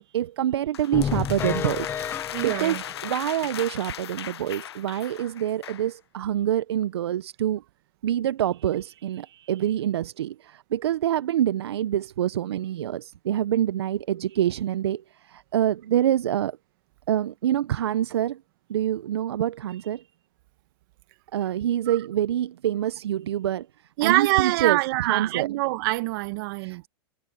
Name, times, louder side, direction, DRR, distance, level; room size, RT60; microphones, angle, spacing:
voice 1, 0.0-2.8 3.0-7.6 8.0-16.6 17.1-18.4 18.7-20.0 21.3-23.7 24.0-25.5 26.6-26.9, right 11 dB, 80° right, 0.6 m, -26 dB
sound 1, 0.7-5.9, left 11 dB, 85° left, 0.7 m, -37 dB
sound 2, 0.9-3.6 4.0-4.1 4.5-4.6 5.0-5.1, left 8 dB, 15° left, 0.4 m, -31 dB
voice 2, 2.3-2.8 21.9-22.0 24.0-26.8, right 22 dB, 55° right, 1.6 m, -25 dB
hypercardioid pair, 120°, 13 cm